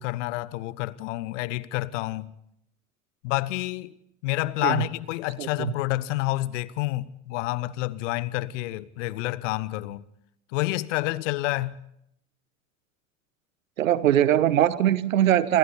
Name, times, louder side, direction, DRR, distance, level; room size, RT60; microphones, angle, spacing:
voice 1, 0.0-2.3 3.2-4.0 4.2-10.0 10.5-11.8, left 18 dB, 65° left, 1.1 m, -29 dB
voice 2, 5.4-5.7 13.8-15.6, right 11 dB, 75° right, 1.3 m, -21 dB
29.0 x 27.0 x 4.3 m
figure-of-eight pair, 65°, 40 cm